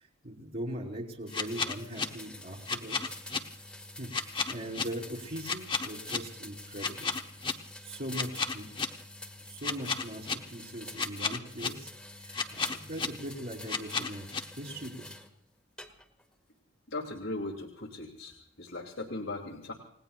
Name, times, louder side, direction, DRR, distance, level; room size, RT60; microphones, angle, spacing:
voice 1, 0.2-3.2 4.0-7.1 7.8-8.7 9.5-11.9 12.2-14.3 14.6-15.1, right 1 dB, 50° right, -2 dB, 3.9 m, -40 dB
sound 1, 1.3-2.0 2.7-3.4 4.1-4.8 5.4-6.2 6.8-7.5 8.1-8.9 9.6-10.3 11.0-11.7 12.3-13.1 13.7-14.4, left 5 dB, 25° left, 1.1 m, -31 dB
sound 2, 1.3-15.3 15.8-16.3, left 1 dB, 5° left, 1.7 m, -47 dB
voice 2, 16.9-19.7, left 2 dB, 80° left, 0 dB, 2.8 m, -38 dB
29.5 x 19.0 x 2.4 m, 0.70 s
head